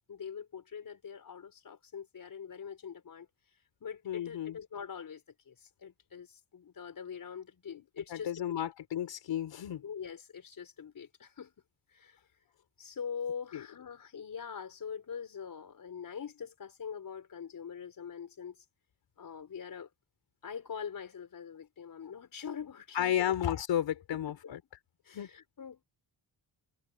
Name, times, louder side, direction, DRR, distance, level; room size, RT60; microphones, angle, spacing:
voice 1, 0.1-3.3 3.8-8.4 9.8-11.5 11.9-12.2 12.8-18.6 19.2-19.9 20.4-23.3 24.1-24.5 25.1-25.8, left 7 dB, 50° left, 5.5 m, -43 dB
voice 2, 4.0-4.6 7.7-7.8 8.1-9.8 13.5-13.6 22.9-24.6 25.1-25.3, left 10 dB, 75° left, 4.5 m, -33 dB
wide cardioid pair, 135°, 43 cm